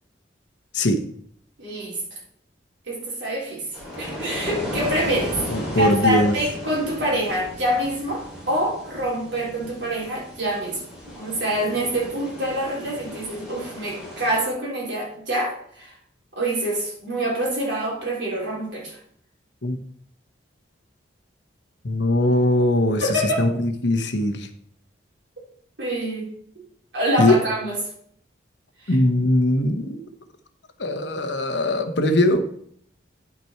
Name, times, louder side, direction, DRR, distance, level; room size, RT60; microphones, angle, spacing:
voice 1, 1.6-2.2 2.9-5.4 5.7-10.8 11.1-15.9 16.3-19.0 22.9-23.4 25.8-26.3 26.9-27.8 28.8-29.0, right 1 dB, 65° right, -4 dB, 3.7 m, -26 dB
sound 1, 3.7-14.4, equal, 5° right, 3.2 m, -35 dB
voice 2, 5.5-6.3 19.6-19.8 21.8-23.0 23.4-24.5 27.2-27.4 28.9-30.0 30.8-32.5, left 1 dB, 70° left, 8 dB, 1.0 m, -20 dB
10.0 x 5.9 x 4.5 m, 0.64 s
head